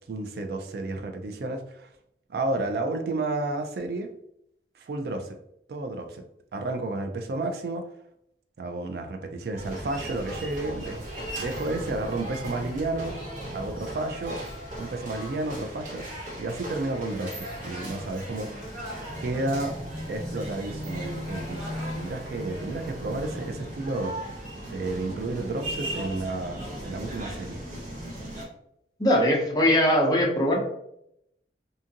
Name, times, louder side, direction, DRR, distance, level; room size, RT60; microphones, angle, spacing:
voice 1, 0.1-1.9 2.3-4.1 4.8-5.4 5.7-6.2 6.5-7.9 8.6-11.0 11.4-13.1 13.5-14.4 14.8-16.1 16.4-18.5 19.2-19.7 20.1-24.2 24.7-27.6, right 2 dB, 60° right, 6 dB, 0.3 m, -31 dB
sound 1, 9.6-28.4, equal, 45° right, 0.8 m, -37 dB
voice 2, 29.0-30.6, equal, 20° left, -1 dB, 0.5 m, -21 dB
2.7 x 2.5 x 2.7 m, 0.76 s
head